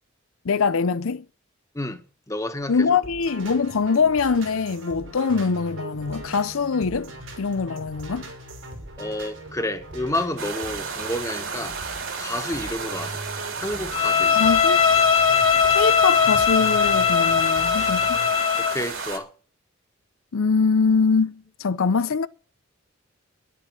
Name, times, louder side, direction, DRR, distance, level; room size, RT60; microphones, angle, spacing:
voice 1, 0.4-1.2 2.7-7.1 7.4-8.3 14.3-14.9 15.7-18.2 20.3-22.3, left 5 dB, 90° left, 0.6 m, -23 dB
voice 2, 2.3-3.0 9.0-11.8 12.2-13.2 13.6-14.4 18.6-19.3, left 1 dB, 15° left, 1.4 m, -30 dB
sound 1, 3.0-18.3, right 1 dB, 85° right, 5.8 m, -40 dB
sound 2, 10.4-19.2, right 5 dB, 70° right, 3.1 m, -33 dB
Bowed string instrument, 13.9-18.8, left 7 dB, 65° left, 2.0 m, -19 dB
11.0 x 10.0 x 7.8 m
head